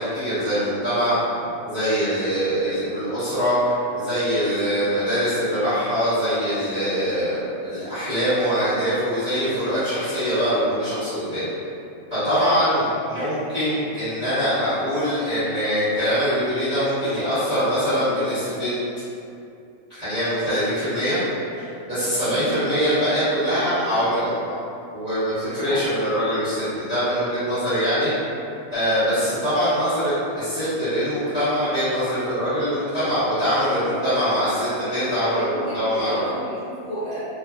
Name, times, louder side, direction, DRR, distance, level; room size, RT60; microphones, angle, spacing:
voice 1, 0.0-1.2 1.6-11.5 12.1-18.7 19.9-21.2 21.5-24.5 24.9-28.1 28.7-36.3, equal, 30° right, -17 dB, 1.2 m, -23 dB
voice 2, 22.2-22.5 25.6-25.9 34.9-37.2, equal, 5° left, -16 dB, 1.3 m, -33 dB
2.7 x 2.3 x 2.4 m, 2.6 s
omnidirectional pair, 1.5 m